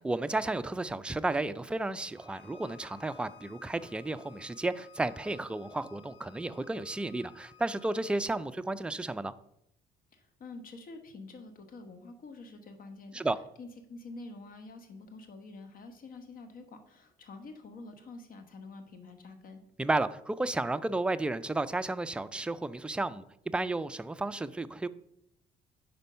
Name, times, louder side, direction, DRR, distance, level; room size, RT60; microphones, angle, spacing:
voice 1, 0.0-9.3 13.1-13.4 19.8-23.2 23.5-24.9, right 2 dB, 5° right, 12 dB, 0.3 m, -32 dB
Bowed string instrument, 2.1-8.2, left 9 dB, 30° left, 1.5 m, -57 dB
voice 2, 10.1-13.3 13.6-19.6, left 3 dB, 50° left, 7 dB, 1.2 m, -47 dB
5.1 x 4.4 x 5.5 m, 0.78 s
supercardioid pair, 80°, 18 cm